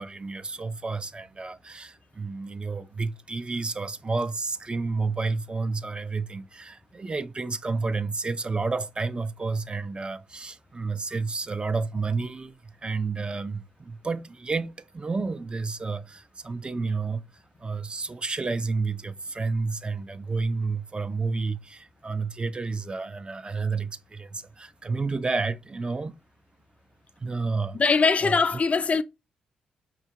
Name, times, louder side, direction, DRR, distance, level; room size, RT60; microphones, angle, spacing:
voice 1, 0.0-17.2 17.6-26.1 27.2-27.8 28.2-28.3, right 4 dB, 30° right, 0.4 m, -30 dB
voice 2, 27.7-29.0, left 4 dB, 40° left, 0.4 m, -21 dB
5.6 x 2.4 x 2.8 m
hypercardioid pair, 40°, 3 cm